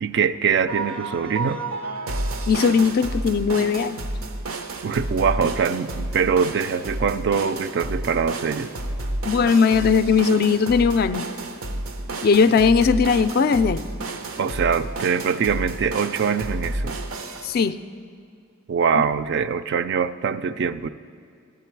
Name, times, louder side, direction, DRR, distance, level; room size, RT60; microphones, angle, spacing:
voice 1, 0.0-1.6 4.8-8.7 14.4-16.9 18.7-20.9, right 6 dB, 55° right, 12 dB, 0.3 m, -23 dB
sound 1, 0.7-17.7, right 2 dB, 90° right, 0.7 m, -31 dB
voice 2, 2.5-4.0 9.3-11.3 12.2-13.8 17.4-17.8 19.0-19.1, left 5 dB, 45° left, 12 dB, 0.3 m, -19 dB
12.0 x 8.9 x 4.5 m, 2.3 s
head